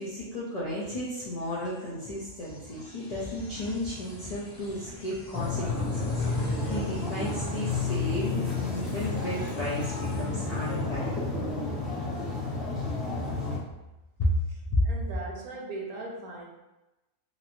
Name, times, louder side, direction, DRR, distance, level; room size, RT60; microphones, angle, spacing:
voice 1, 0.0-11.5 14.2-14.4 14.7-14.8, left 1 dB, 70° left, -7 dB, 0.3 m, -33 dB
sound 1, 1.5-11.2, left 1 dB, 45° left, 0.7 m, -47 dB
sound 2, 5.3-13.6, left 3 dB, ahead, 0.5 m, -31 dB
voice 2, 14.8-16.4, right 2 dB, 75° right, -2 dB, 1.2 m, -39 dB
2.9 x 2.9 x 2.6 m, 0.99 s
omnidirectional pair, 1.6 m